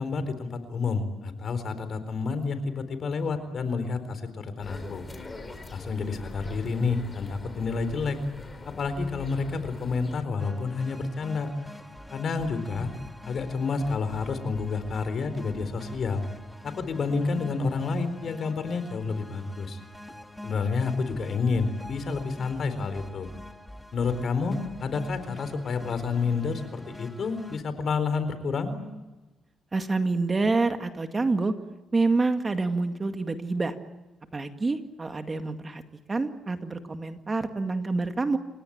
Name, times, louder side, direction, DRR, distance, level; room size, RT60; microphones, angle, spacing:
voice 1, 0.0-5.0 5.7-8.2 8.8-11.5 12.1-12.9 13.2-16.2 16.6-19.8 20.4-23.3 23.9-28.8, left 4 dB, 55° left, 11 dB, 4.2 m, -29 dB
sound 1, 4.6-10.2, left 2 dB, 20° left, 4.7 m, -43 dB
sound 2, 10.4-27.6, left 1 dB, 5° left, 2.1 m, -45 dB
voice 2, 29.7-31.5 31.9-33.8 34.3-35.8 36.1-38.4, right 3 dB, 25° right, 7 dB, 2.0 m, -27 dB
29.5 x 17.5 x 8.8 m, 1.1 s
cardioid pair, 90°, 0 cm